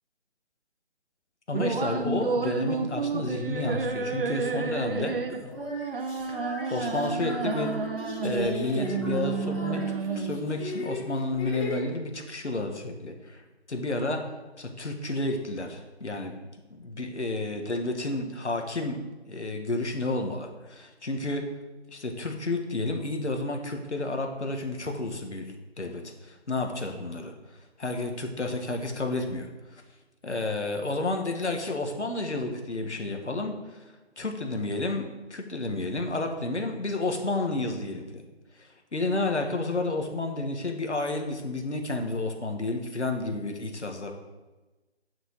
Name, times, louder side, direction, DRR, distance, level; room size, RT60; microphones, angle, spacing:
voice 1, 1.5-5.5 6.3-7.8 8.2-13.4 13.7-14.2 14.6-16.3 16.7-19.0 19.3-21.4 21.9-27.3 27.8-29.8 30.2-38.2 38.6-44.1, left 2 dB, 80° left, 4 dB, 1.8 m, -31 dB
sound 1, 1.5-10.5, right 4 dB, 55° right, 0.9 m, -31 dB
sound 2, 4.6-4.7 5.4-11.8, left 2 dB, 30° left, 2.9 m, -37 dB
9.5 x 6.3 x 4.8 m, 1.2 s
figure-of-eight pair, 150°, 34 cm